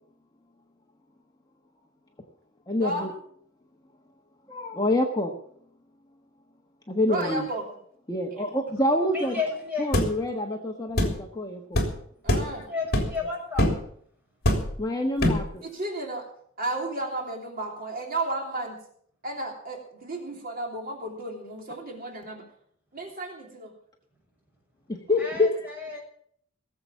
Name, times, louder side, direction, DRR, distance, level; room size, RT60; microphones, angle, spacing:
voice 1, 2.7-3.1 4.5-5.3 6.9-7.5 8.1-9.3 9.8-11.8 14.8-15.6 24.9-25.6 25.9-26.0, left 1 dB, 20° left, 1 dB, 1.2 m, -26 dB
voice 2, 7.1-7.6 12.2-12.7 15.6-16.2 16.6-18.8 19.2-22.4 22.9-23.7, right 2 dB, 45° right, 0 dB, 3.2 m, -33 dB
voice 3, 9.1-9.9 12.5-13.7 25.2-26.0, left 4 dB, 10° right, -1 dB, 6.3 m, -32 dB
sound 1, 9.9-10.1 11.0-11.2 11.7-11.9 12.3-12.5 12.9-13.2 13.6-13.8 14.4-14.8 15.2-15.5, left 1 dB, 55° left, 3.2 m, -23 dB
18.5 x 7.8 x 7.2 m, 0.64 s
head